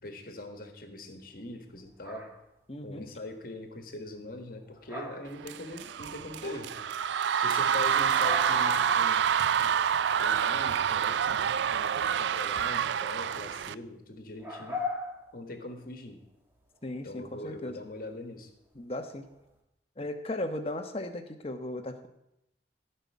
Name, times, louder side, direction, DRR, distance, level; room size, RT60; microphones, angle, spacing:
voice 1, 0.0-2.3 2.8-6.8 7.4-9.4 10.1-11.3 11.7-14.8 15.3-16.2 17.0-18.5, left 2 dB, 55° left, 6 dB, 1.7 m, -42 dB
sound 1, 1.7-2.4 4.6-5.5 5.7-6.2 6.7-6.8 7.1-7.2 7.3-7.4 7.7-9.2 9.5-9.6 10.0-10.4 12.7-12.8 14.4-15.9 16.6-17.0 18.7-18.8 19.2-19.4, left 2 dB, 10° right, 1.9 m, -39 dB
voice 2, 2.7-3.1 16.8-17.8 18.8-19.3 20.0-22.1, left 1 dB, 35° left, 6 dB, 1.2 m, -36 dB
sound 2, 5.4-13.7, right 8 dB, 80° right, 0.4 m, -27 dB
15.5 x 5.7 x 8.5 m, 0.84 s
head